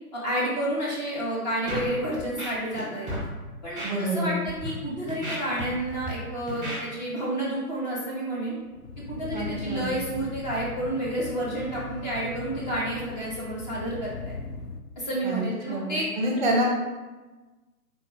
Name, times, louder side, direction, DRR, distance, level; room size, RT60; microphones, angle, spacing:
voice 1, 0.1-3.1 3.6-8.5 9.1-14.4 15.0-16.1, right 1 dB, 30° left, -6 dB, 0.8 m, -30 dB
Scratching (performance technique), 1.7-1.9 2.2-2.8 3.1-3.2 3.8-3.9 4.5-4.7 5.1-6.1 6.5-6.8, equal, 10° right, 1.2 m, -33 dB
voice 2, 3.8-4.4 9.3-10.0 15.2-16.6, right 1 dB, 30° right, -1 dB, 0.6 m, -28 dB
sound 1, 8.3-14.8, left 4 dB, 85° left, 0.5 m, -39 dB
3.8 x 2.2 x 3.8 m, 1.2 s
figure-of-eight pair, 135°, 46 cm